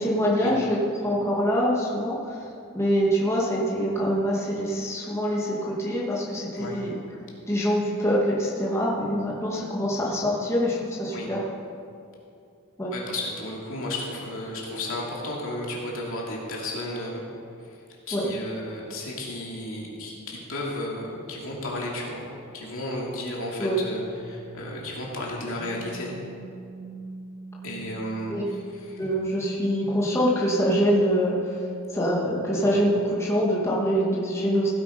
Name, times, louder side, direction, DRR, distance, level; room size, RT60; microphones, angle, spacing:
voice 1, 0.0-2.4 2.7-7.0 7.5-11.4 12.8-12.9 18.1-18.3 23.6-23.8 28.3-28.4 29.0-31.6 31.9-34.7, equal, 15° left, -5 dB, 1.8 m, -24 dB
voice 2, 12.9-17.2 17.6-17.8 18.1-22.3 22.5-26.1 27.6-29.0, left 1 dB, 65° left, -3 dB, 2.7 m, -33 dB
sound 1, 23.7-32.9, equal, 30° right, 1.3 m, -42 dB
16.0 x 8.4 x 5.2 m, 2.5 s
head